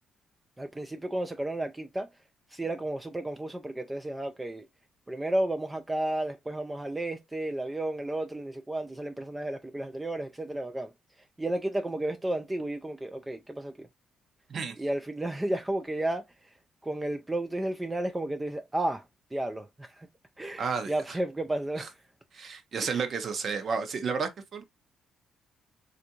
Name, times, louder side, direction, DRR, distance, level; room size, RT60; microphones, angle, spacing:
voice 1, 0.6-2.1 2.5-4.7 5.1-10.9 11.2-13.9 14.8-16.6 16.8-19.1 19.3-20.1 20.4-22.1 22.8-23.1, right 1 dB, 15° right, 0.3 m, -32 dB
voice 2, 20.6-20.9 22.3-24.6, right 5 dB, 55° right, 0.7 m, -31 dB
3.4 x 2.5 x 2.8 m
cardioid pair, 90°, 0 cm